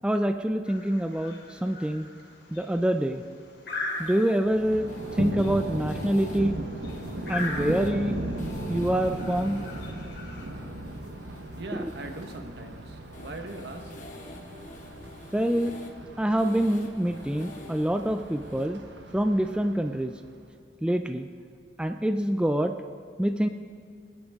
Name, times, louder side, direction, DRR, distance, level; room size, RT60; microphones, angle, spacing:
voice 1, 0.0-2.1 2.5-3.2 4.0-4.9 5.2-6.5 7.3-8.2 8.7-9.6 11.7-11.9 15.3-15.7 16.2-18.8 19.1-20.1 20.8-21.3 21.8-22.7 23.2-23.5, right 1 dB, 5° right, 7 dB, 0.3 m, -26 dB
sound 1, 0.7-10.5, left 2 dB, 65° left, 3.1 m, -41 dB
sound 2, 3.7-18.7, left 2 dB, 45° left, 1.3 m, -48 dB
Thunder, 4.5-20.4, right 1 dB, 85° right, 1.2 m, -37 dB
voice 2, 11.6-13.9, right 2 dB, 65° right, 5 dB, 1.2 m, -40 dB
25.0 x 10.0 x 3.6 m, 2.1 s
head